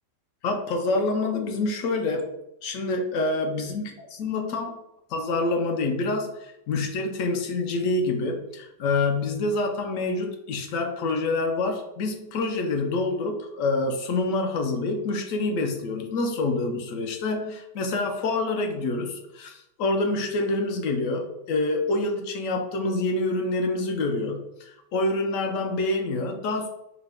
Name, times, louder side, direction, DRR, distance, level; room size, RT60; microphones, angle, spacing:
voice 1, 0.4-2.3 2.6-3.9 4.2-4.8 5.1-26.7, left 2 dB, 75° left, 4 dB, 0.7 m, -27 dB
4.8 x 2.1 x 3.4 m, 0.86 s
omnidirectional pair, 1.9 m